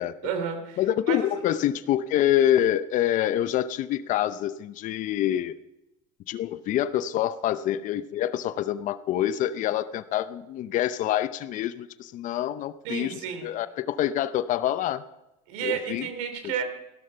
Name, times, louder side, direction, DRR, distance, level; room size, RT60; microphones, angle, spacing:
voice 1, 0.2-0.8 1.1-1.3 12.8-13.5 15.5-16.6, right 8 dB, 75° right, 7 dB, 3.2 m, -31 dB
voice 2, 0.8-5.5 6.3-15.0 15.6-16.0 16.4-16.5, left 12 dB, 50° left, 13 dB, 0.7 m, -26 dB
16.0 x 12.5 x 5.7 m, 0.96 s
supercardioid pair, 100°, 16 cm